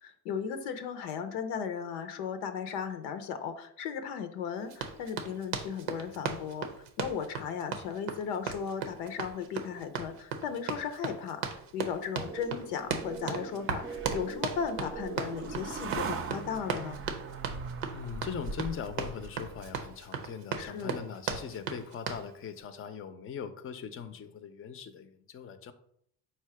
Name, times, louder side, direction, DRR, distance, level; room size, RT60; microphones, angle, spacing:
voice 1, 0.0-6.7 7.0-17.1 20.6-21.0, left 7 dB, 85° left, 8 dB, 0.6 m, -36 dB
Run, 4.7-22.3, right 6 dB, 90° right, 0.7 m, -37 dB
sound 1, 12.1-17.1, right 4 dB, 5° right, 0.8 m, -44 dB
sound 2, 12.6-20.0, right 5 dB, 30° right, 0.5 m, -41 dB
voice 2, 17.9-25.7, left 7 dB, 30° left, 10 dB, 0.5 m, -40 dB
4.2 x 2.2 x 4.7 m, 0.69 s
supercardioid pair, 70°, 44 cm